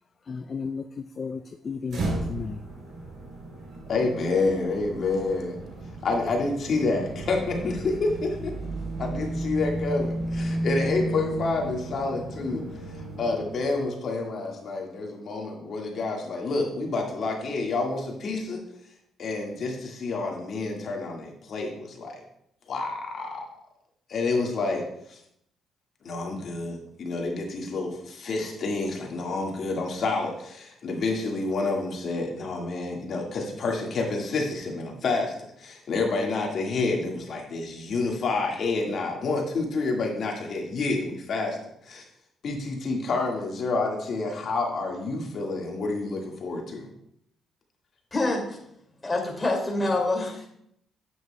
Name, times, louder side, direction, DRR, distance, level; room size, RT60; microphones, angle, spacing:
voice 1, 0.3-2.6, left 5 dB, 40° left, 10 dB, 0.3 m, -34 dB
sound 1, 1.9-13.9, right 1 dB, 65° right, 3.1 m, -33 dB
voice 2, 3.9-5.6 6.0-8.6 9.0-12.6 13.0-18.6 19.2-22.2 22.7-23.5 24.1-24.8 25.1-25.2 26.0-41.6 41.9-42.0 42.4-46.9, left 3 dB, 60° left, 0 dB, 1.7 m, -28 dB
voice 3, 48.1-48.6 49.0-50.5, left 2 dB, 20° left, 0 dB, 2.2 m, -26 dB
9.1 x 8.2 x 2.2 m, 0.73 s
cardioid pair, 90°, 0 cm